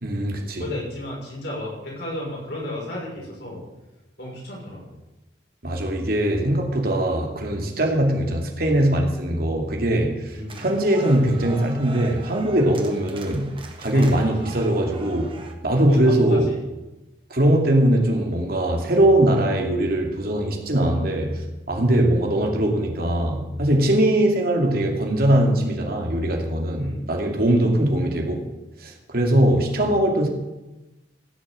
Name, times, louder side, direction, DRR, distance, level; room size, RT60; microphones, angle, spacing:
voice 1, 0.0-0.6 5.6-13.5 13.8-15.3 15.6-16.5 17.3-28.4 28.8-30.3, right 1 dB, 55° right, 1 dB, 2.5 m, -21 dB
voice 2, 0.6-3.6 4.2-4.9 10.3-10.6 13.9-14.5 15.2-15.3 15.9-16.6 26.7-27.0 27.6-27.8, left 1 dB, 60° left, -3 dB, 6.1 m, -33 dB
sound 1, 10.5-15.5, right 3 dB, 30° right, 1.5 m, -40 dB
16.5 x 7.0 x 7.6 m, 1.0 s
head